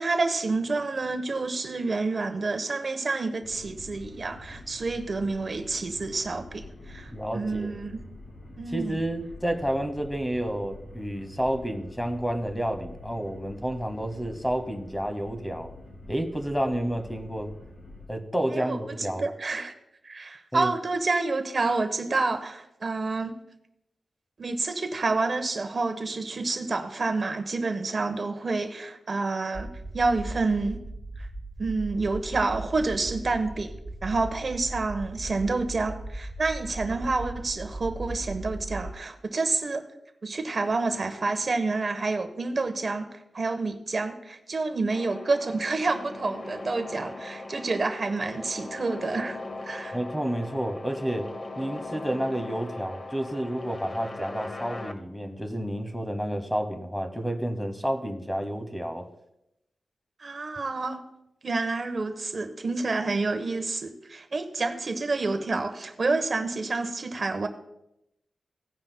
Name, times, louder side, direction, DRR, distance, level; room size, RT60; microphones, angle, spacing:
voice 1, 0.0-8.0 8.6-9.0 18.5-19.7 20.0-23.4 24.4-30.8 31.2-31.3 31.6-33.7 34.0-39.8 40.2-43.1 43.3-49.4 49.6-50.0 60.2-61.0 61.4-67.5, right 3 dB, 40° right, 7 dB, 1.0 m, -28 dB
sound 1, 3.4-18.1, left 1 dB, 60° left, 2.6 m, -46 dB
voice 2, 7.1-7.8 8.7-15.7 16.1-17.5 18.1-19.3 20.5-20.7 49.9-51.3 51.6-59.1, right 1 dB, 5° left, 7 dB, 0.9 m, -30 dB
sound 2, 29.5-38.9, right 1 dB, 20° right, 1.3 m, -38 dB
sound 3, 44.9-54.9, left 2 dB, 30° left, 0.8 m, -39 dB
17.0 x 9.6 x 2.2 m, 0.84 s
wide cardioid pair, 145°, 0 cm